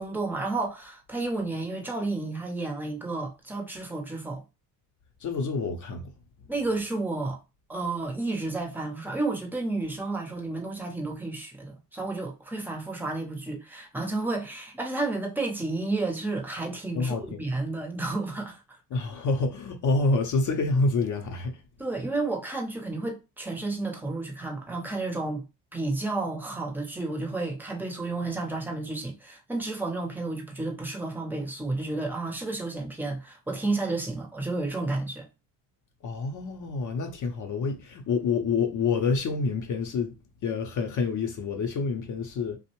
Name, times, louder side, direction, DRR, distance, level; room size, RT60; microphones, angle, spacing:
voice 1, 0.0-4.4 6.5-7.4 7.7-18.6 21.8-25.4 25.7-35.3, right 2 dB, 5° right, 0.6 m, -31 dB
voice 2, 5.2-6.1 16.9-17.4 18.9-21.6 36.0-40.1 40.4-42.6, left 4 dB, 40° left, 0.6 m, -27 dB
2.5 x 2.1 x 2.9 m
supercardioid pair, 90°, 46 cm